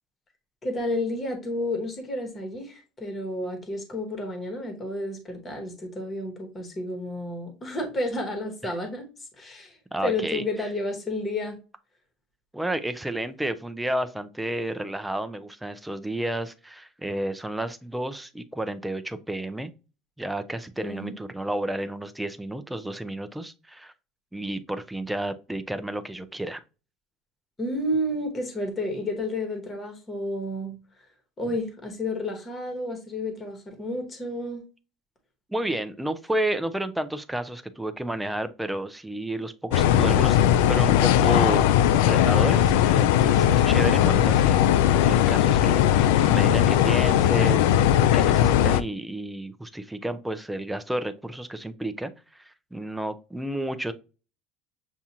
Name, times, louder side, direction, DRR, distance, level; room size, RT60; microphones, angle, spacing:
voice 1, 0.6-9.1 9.4-11.6 20.8-21.1 27.6-30.8 31.4-34.6, left 1 dB, 20° left, 1.1 m, -31 dB
voice 2, 9.9-10.4 12.5-19.7 20.2-23.9 24.3-26.6 35.5-40.4 40.7-41.7 42.0-47.9 48.1-53.9, right 1 dB, 5° right, 0.4 m, -31 dB
sound 1, 39.7-48.8, left 11 dB, 85° left, 0.3 m, -19 dB
7.1 x 2.4 x 2.8 m
cardioid pair, 165°, 0 cm